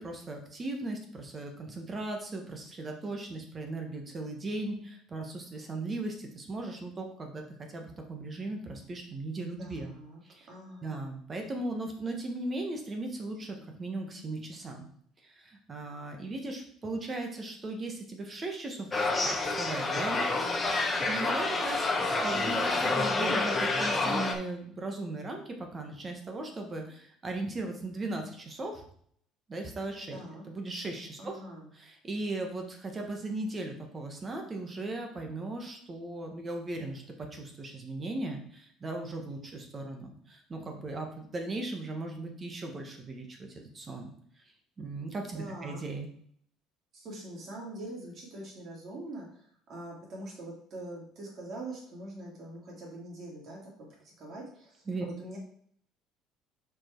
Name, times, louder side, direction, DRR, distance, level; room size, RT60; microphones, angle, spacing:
voice 1, 0.0-9.9 10.3-10.5 10.8-14.9 15.2-20.2 21.1-28.8 29.5-30.2 30.5-31.4 31.7-44.1 44.8-46.1 54.9-55.0, right 2 dB, 25° right, 3 dB, 1.3 m, -37 dB
voice 2, 9.6-10.2 10.5-11.2 30.1-30.4 31.2-31.7 45.3-45.9 46.9-53.6 54.0-55.4, right 1 dB, 45° right, -2 dB, 2.8 m, -43 dB
sound 1, 18.9-24.3, left 3 dB, 20° left, 1.1 m, -28 dB
5.7 x 4.9 x 4.5 m, 0.63 s
cardioid pair, 135°, 0 cm